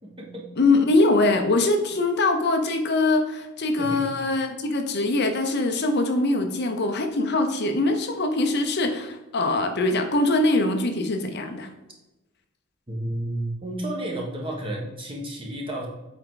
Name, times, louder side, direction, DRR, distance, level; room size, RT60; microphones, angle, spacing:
voice 1, 0.0-0.5 3.8-4.0 12.9-15.9, right 1 dB, 25° right, -1 dB, 1.5 m, -31 dB
voice 2, 0.6-11.7, left 2 dB, 50° left, 5 dB, 0.7 m, -23 dB
8.0 x 4.5 x 3.9 m, 1.0 s
head